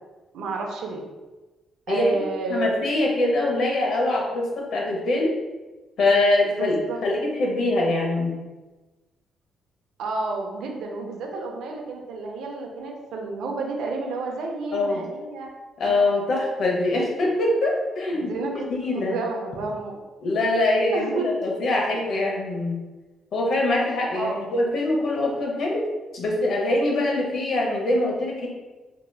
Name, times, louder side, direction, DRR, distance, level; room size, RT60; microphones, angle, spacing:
voice 1, 0.3-1.0 1.9-2.7 6.4-7.0 10.0-15.5 15.8-16.1 18.1-18.7 18.9-20.0 20.9-21.3 24.1-24.4, right 3 dB, 80° right, 1 dB, 0.6 m, -31 dB
voice 2, 1.9-2.2 2.5-5.3 6.0-6.8 7.0-8.4 14.7-15.0 15.8-18.3 18.8-19.2 20.2-22.8 23.3-25.8 26.1-28.5, left 2 dB, 65° left, -2 dB, 0.9 m, -23 dB
3.3 x 2.9 x 2.3 m, 1.2 s
cardioid pair, 90°, 0 cm